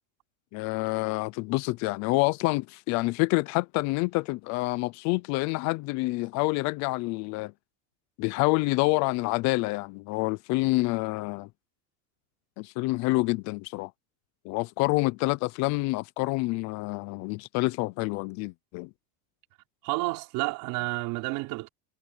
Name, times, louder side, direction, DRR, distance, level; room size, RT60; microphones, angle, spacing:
voice 1, 0.5-7.5 8.2-11.5 12.6-13.9 14.4-18.9, left 23 dB, 45° left, 0.5 m, -27 dB
voice 2, 19.8-21.7, right 23 dB, 55° right, 4.9 m, -30 dB
cardioid pair, 160°, 40 cm